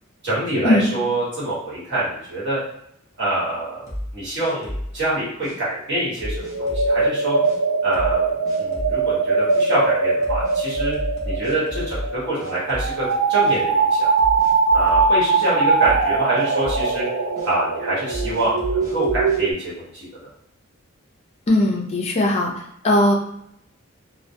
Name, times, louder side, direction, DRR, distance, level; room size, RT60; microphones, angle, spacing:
voice 1, 0.2-2.6 3.2-3.9 4.1-7.4 7.8-8.3 8.6-11.0 11.2-13.9 14.7-17.0 17.4-20.1, right 1 dB, 55° right, -8 dB, 1.1 m, -25 dB
sound 1, 3.9-5.0 5.4-5.6 6.2-6.9 7.4-7.6 7.9-8.2 8.4-9.0 9.5-9.6 10.2-12.1 12.4-13.1 13.4-13.6 14.2-15.5 15.8-16.1 16.3-16.9 17.4-17.5 18.1-19.4, equal, 15° right, 0.6 m, -32 dB
sound 2, 6.2-19.5, right 4 dB, 75° right, 0.4 m, -21 dB
voice 2, 21.5-22.5 22.8-23.1, left 1 dB, 30° left, -1 dB, 0.4 m, -18 dB
2.1 x 2.1 x 2.7 m, 0.74 s
head